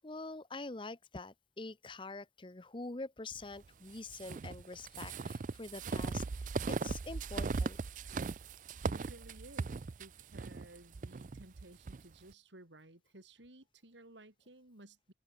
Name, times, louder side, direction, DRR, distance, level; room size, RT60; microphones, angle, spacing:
voice 1, 0.0-6.2 6.7-7.8, left 3 dB, 25° left, 0.8 m, -45 dB
sound 1, 4.1-12.0, right 4 dB, 45° right, 0.4 m, -38 dB
voice 2, 8.9-15.1, right 1 dB, 85° right, 3.8 m, -56 dB
head